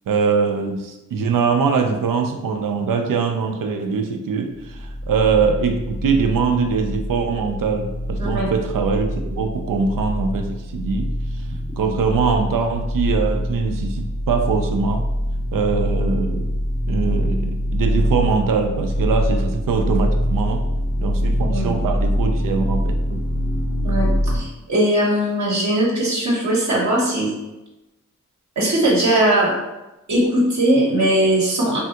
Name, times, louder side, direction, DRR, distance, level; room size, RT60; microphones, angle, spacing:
voice 1, 0.1-11.1 11.8-15.0 15.5-16.5 16.8-20.6 21.0-23.2, right 5 dB, 85° right, 5 dB, 0.5 m, -22 dB
sound 1, 4.5-24.4, equal, 35° left, 0.6 m, -24 dB
voice 2, 8.2-8.5 21.5-21.7 23.8-27.3 28.6-29.6 30.1-31.8, right 1 dB, 60° right, -4 dB, 0.9 m, -19 dB
3.3 x 2.4 x 2.8 m, 0.98 s
cardioid pair, 45°, 32 cm